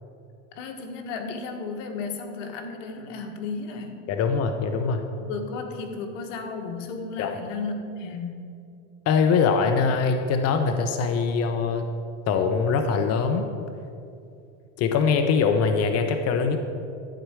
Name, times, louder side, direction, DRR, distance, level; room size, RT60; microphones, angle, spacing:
voice 1, 0.5-4.1 5.2-8.5, left 4 dB, 80° left, 4 dB, 1.6 m, -34 dB
voice 2, 4.1-5.0 7.2-7.3 9.1-11.9 12.3-13.5 14.8-16.6, left 5 dB, 40° left, 6 dB, 0.9 m, -22 dB
12.5 x 4.7 x 8.2 m, 2.5 s
supercardioid pair, 120°, 37 cm